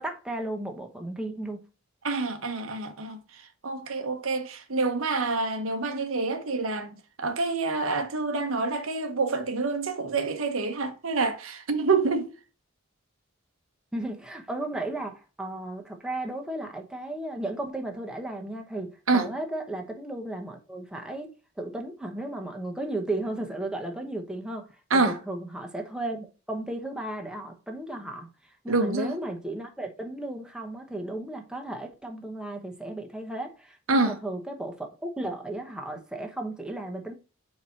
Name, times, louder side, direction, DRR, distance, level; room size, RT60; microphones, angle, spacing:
voice 1, 0.0-1.6 13.9-21.3 21.6-24.7 24.9-28.3 28.6-37.1, right 1 dB, 5° right, 0.9 m, -34 dB
voice 2, 2.0-3.2 3.6-12.3 19.1-19.3 24.9-25.2 28.7-29.2 33.9-34.2, right 3 dB, 90° right, 1.0 m, -27 dB
4.7 x 4.3 x 5.4 m
head